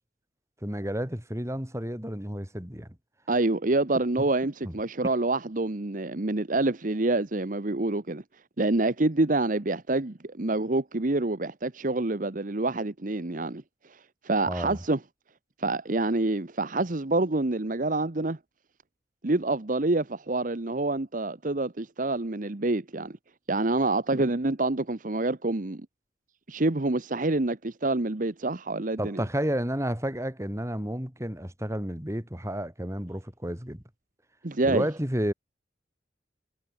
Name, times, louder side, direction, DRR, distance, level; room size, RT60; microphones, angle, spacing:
voice 1, 0.6-2.9 4.6-4.7 14.5-14.8 29.0-33.8 34.6-35.3, equal, 15° right, 4.2 m, -31 dB
voice 2, 3.3-8.2 8.6-13.6 13.9-15.0 15.6-18.4 19.2-23.2 23.5-25.9 26.5-29.2 34.4-34.9, right 2 dB, 45° right, 1.1 m, -27 dB
head